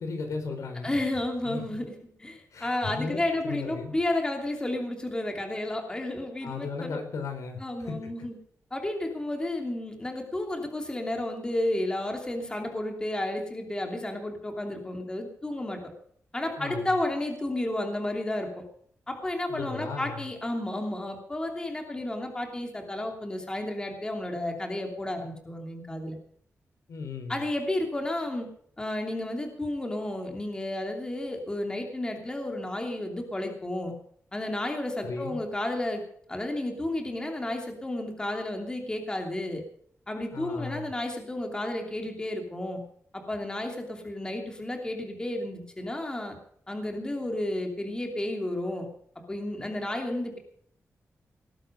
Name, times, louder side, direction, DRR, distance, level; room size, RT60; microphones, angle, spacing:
voice 1, 0.0-1.0 1.4-1.7 2.5-3.9 6.4-8.3 16.6-17.0 19.5-20.3 26.9-27.4 35.0-35.4 40.3-40.9, left 4 dB, 85° left, 5 dB, 4.6 m, -36 dB
voice 2, 0.8-7.0 7.6-8.3 8.7-15.8 16.3-18.6 19.1-26.1 27.3-28.5 28.8-33.9 34.3-36.0 36.3-39.6 40.1-42.8 43.1-46.4 46.7-48.9 49.3-50.4, left 1 dB, 15° left, 3 dB, 2.9 m, -32 dB
19.0 x 11.0 x 5.2 m, 0.62 s
wide cardioid pair, 175°, 5 cm